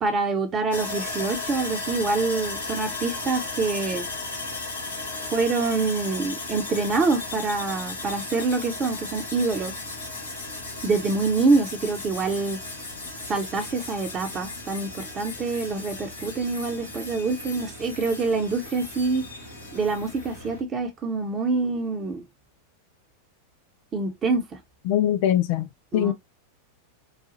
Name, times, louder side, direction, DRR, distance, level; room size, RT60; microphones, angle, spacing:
voice 1, 0.0-4.1 5.3-9.7 10.8-12.6 13.3-19.2 19.7-22.2 23.9-24.6 25.9-26.1, right 3 dB, 25° right, 0.9 m, -26 dB
Sawing, 0.7-20.6, left 2 dB, 75° left, 1.9 m, -35 dB
voice 2, 24.9-25.7 25.9-26.1, left 11 dB, 45° left, 0.3 m, -22 dB
4.0 x 2.3 x 2.8 m
figure-of-eight pair, 90°, 0 cm